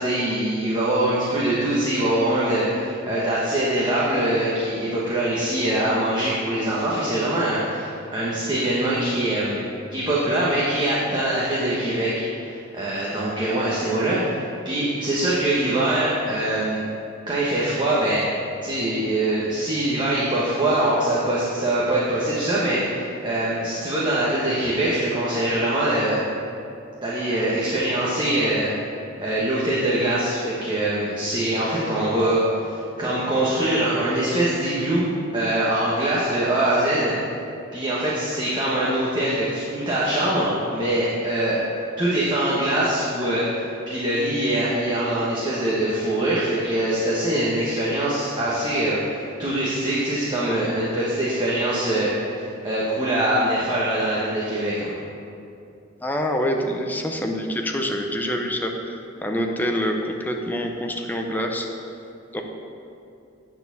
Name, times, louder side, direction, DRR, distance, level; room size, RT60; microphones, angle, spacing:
voice 1, 0.0-9.6 9.9-12.1 12.4-16.8 17.3-18.3 18.6-26.2 27.0-28.7 29.2-37.1 37.7-41.6 42.0-54.9, right 1 dB, 25° right, -7 dB, 1.2 m, -23 dB
voice 2, 56.0-61.7 62.3-62.4, equal, 10° left, 2 dB, 0.6 m, -26 dB
8.7 x 4.3 x 6.8 m, 2.6 s
head